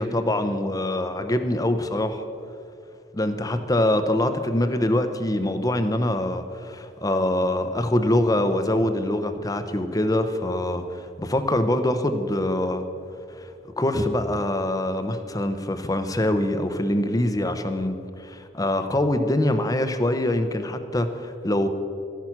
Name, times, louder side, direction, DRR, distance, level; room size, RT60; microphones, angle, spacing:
voice 1, 0.0-2.2 3.1-12.8 13.4-13.5 13.8-21.7, left 1 dB, 20° left, 9 dB, 0.8 m, -24 dB
13.0 x 10.5 x 5.9 m, 2.5 s
head